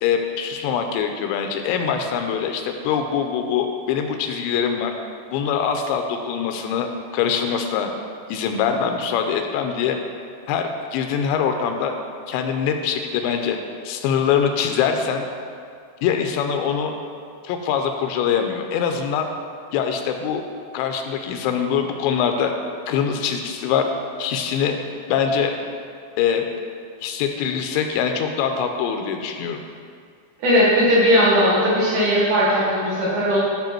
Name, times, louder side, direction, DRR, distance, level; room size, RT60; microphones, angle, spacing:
voice 1, 0.0-5.0 5.3-7.9 8.3-10.0 10.5-11.9 12.3-13.6 13.8-15.2 16.0-16.9 17.4-19.3 19.7-20.4 20.7-22.5 22.9-23.9 24.2-24.8 25.1-25.5 26.2-26.5 27.0-29.6, left 7 dB, 85° left, 5 dB, 2.8 m, -23 dB
voice 2, 30.4-33.4, equal, 60° right, -6 dB, 2.2 m, -18 dB
13.0 x 5.5 x 4.5 m, 2.2 s
omnidirectional pair, 5.2 m